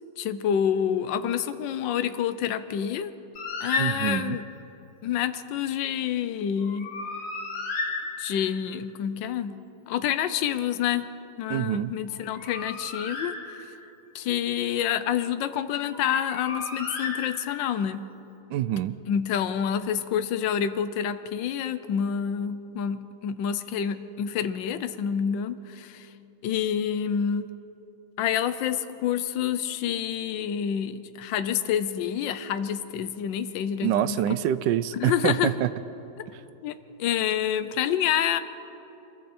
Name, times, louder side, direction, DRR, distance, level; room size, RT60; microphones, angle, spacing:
voice 1, 0.2-3.1 3.6-4.4 5.0-6.9 8.2-9.5 9.9-11.1 11.4-13.3 14.1-18.1 19.1-26.1 26.4-27.4 28.2-34.2 34.9-35.5 36.6-38.4, left 9 dB, 70° left, 11 dB, 1.4 m, -28 dB
Bird, 3.4-4.5 6.6-8.7 12.1-14.0 15.9-17.8, left 4 dB, 50° left, 2.4 m, -34 dB
voice 2, 3.8-4.4 11.5-11.9 18.5-18.9 33.8-35.7, right 11 dB, 70° right, 14 dB, 1.1 m, -26 dB
26.5 x 22.5 x 4.4 m, 2.9 s
omnidirectional pair, 2.3 m